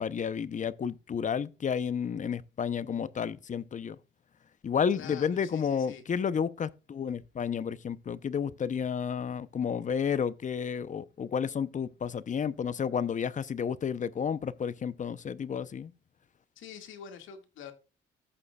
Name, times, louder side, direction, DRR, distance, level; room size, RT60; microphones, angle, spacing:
voice 1, 0.0-4.0 4.6-15.9, left 7 dB, 40° left, 0.7 m, -31 dB
voice 2, 4.9-6.0 16.6-17.7, left 7 dB, 80° left, 2.0 m, -46 dB
14.0 x 6.8 x 2.3 m
cardioid pair, 90°, 20 cm